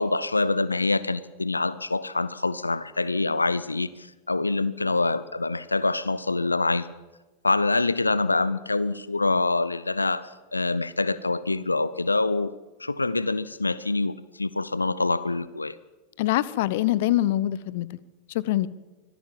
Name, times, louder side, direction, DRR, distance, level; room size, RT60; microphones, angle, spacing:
voice 1, 0.0-6.9 7.4-12.5 12.8-15.8, left 3 dB, 80° left, 17 dB, 0.8 m, -25 dB
voice 2, 16.2-17.9 18.3-18.7, left 14 dB, 50° left, 19 dB, 1.0 m, -24 dB
25.0 x 18.0 x 7.5 m, 1.2 s
figure-of-eight pair, 90°, 0 cm